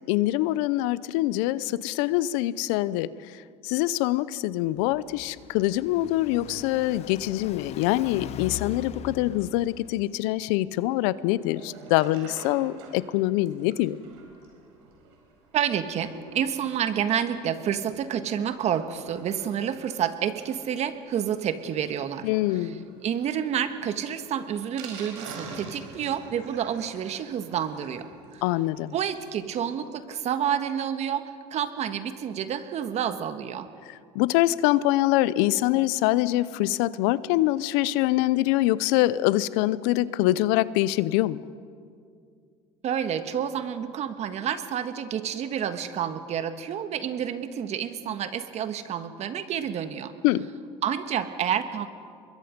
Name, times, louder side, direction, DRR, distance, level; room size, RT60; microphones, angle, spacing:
voice 1, 0.1-3.1 3.6-14.0 22.2-22.9 28.4-28.9 34.1-41.4 50.2-50.5, left 16 dB, 80° left, 18 dB, 0.6 m, -24 dB
Car passing by, 4.7-10.2, left 10 dB, 50° left, 1.1 m, -41 dB
Sink (filling or washing), 11.3-29.4 29.7-29.8 30.0-30.1 30.4-30.5, right 3 dB, 85° right, 4.6 m, -48 dB
voice 2, 15.5-28.1 28.3-28.4 28.9-33.7 42.8-50.1 50.8-51.9, right 9 dB, 50° right, 10 dB, 1.5 m, -29 dB
24.5 x 21.5 x 5.2 m, 2.3 s
supercardioid pair, 95°, 14 cm